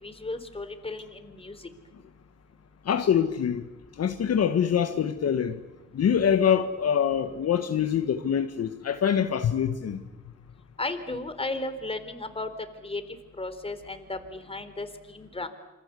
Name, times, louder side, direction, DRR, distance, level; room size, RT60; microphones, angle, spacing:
voice 1, 0.0-1.6 10.8-12.5 12.8-13.0 13.4-15.5, left 2 dB, 20° left, 3.9 m, -34 dB
voice 2, 2.8-3.7 4.0-5.6 5.9-10.0, left 8 dB, 55° left, 1.6 m, -24 dB
27.0 x 25.5 x 8.4 m
cardioid pair, 90°, 30 cm